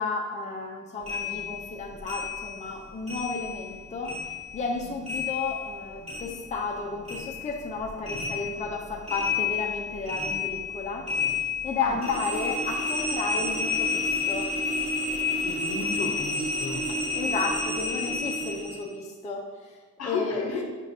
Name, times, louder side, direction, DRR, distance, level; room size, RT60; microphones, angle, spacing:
voice 1, 0.0-4.1 4.5-11.1 11.6-14.5 16.9-19.8 20.0-20.6, left 4 dB, 25° left, -1 dB, 0.5 m, -33 dB
sound 1, 1.1-3.8 4.0-6.8 7.0-18.8, left 3 dB, 20° right, 1.3 m, -30 dB
voice 2, 15.4-16.9 20.0-20.6, left 4 dB, 55° left, 2 dB, 0.7 m, -32 dB
5.0 x 3.0 x 2.7 m, 1.3 s
cardioid pair, 90°, 30 cm